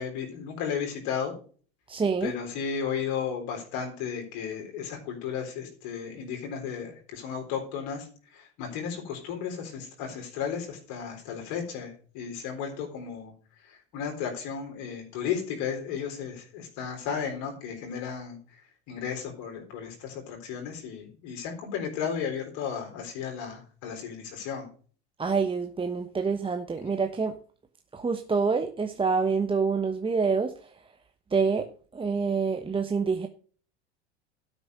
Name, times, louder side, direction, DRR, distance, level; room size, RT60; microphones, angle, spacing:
voice 1, 0.0-1.3 2.2-13.3 13.6-24.7, left 7 dB, 60° left, 2 dB, 4.0 m, -34 dB
voice 2, 1.9-2.3 25.2-27.4 27.9-30.9 31.3-33.3, right 5 dB, 15° right, 6 dB, 1.0 m, -27 dB
12.0 x 6.3 x 6.4 m, 0.42 s
hypercardioid pair, 80°, 34 cm